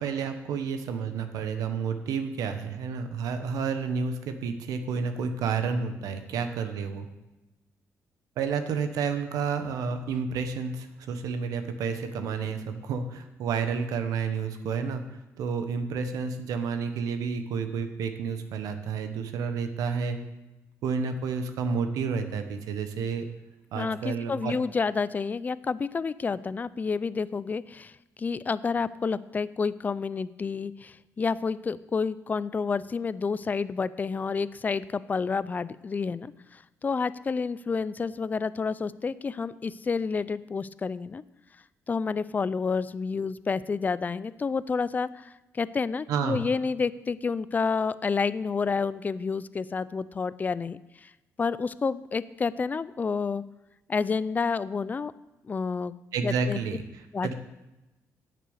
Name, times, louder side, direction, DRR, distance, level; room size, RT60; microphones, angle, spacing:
voice 1, 0.0-7.1 8.4-15.0 15.4-20.2 20.8-23.2 23.7-24.6 46.1-46.4 56.1-56.8 57.2-57.3, right 5 dB, 90° right, 7 dB, 1.2 m, -30 dB
voice 2, 23.7-27.9 28.2-41.2 41.9-51.1 51.4-53.4 53.9-55.1 55.4-55.9 56.2-56.6 57.1-57.3, left 5 dB, 30° left, 17 dB, 0.4 m, -29 dB
10.5 x 6.7 x 7.9 m, 1.0 s
cardioid pair, 110°, 6 cm